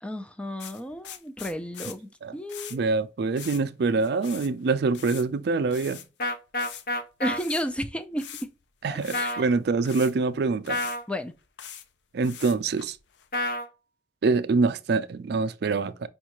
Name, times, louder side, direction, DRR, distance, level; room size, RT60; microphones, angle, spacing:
voice 1, 0.0-2.8 7.2-8.5 8.9-9.4 11.1-11.3, equal, 5° left, 0.4 m, -33 dB
sound 1, 0.6-2.0 2.5-2.8 3.4-3.6 3.9-4.5 4.8-5.2 5.7-6.1 6.6-6.9 7.3-7.6 8.2-8.6 9.0-9.3 9.8-10.1 10.7-11.0 11.4-11.8 12.2-13.3, left 10 dB, 75° left, 0.5 m, -42 dB
voice 2, 2.7-6.0 8.8-10.8 12.1-13.0 14.2-16.1, right 4 dB, 65° right, 0.4 m, -25 dB
sound 2, 6.2-7.4 9.1-9.4 10.7-11.0 13.3-13.7, left 1 dB, 55° left, 0.9 m, -28 dB
5.2 x 2.4 x 2.9 m
head